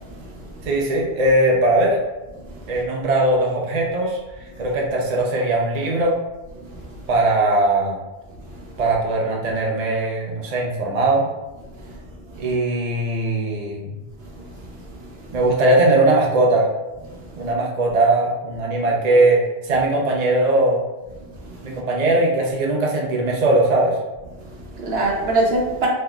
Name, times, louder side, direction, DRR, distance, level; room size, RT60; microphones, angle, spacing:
voice 1, 0.0-0.6 2.5-2.7 6.6-7.1 8.5-8.7 11.8-12.0 12.3-12.5 14.2-15.4 17.1-17.5 21.4-21.8 24.4-25.9, right 2 dB, 75° right, -2 dB, 1.0 m, -27 dB
voice 2, 0.6-2.0 2.7-4.2 4.6-6.2 7.1-8.0 8.8-11.2 12.4-13.9 15.3-16.7 17.3-20.8 21.6-24.0, right 2 dB, 45° right, -2 dB, 0.7 m, -19 dB
3.9 x 3.1 x 2.2 m, 1.1 s
omnidirectional pair, 1.1 m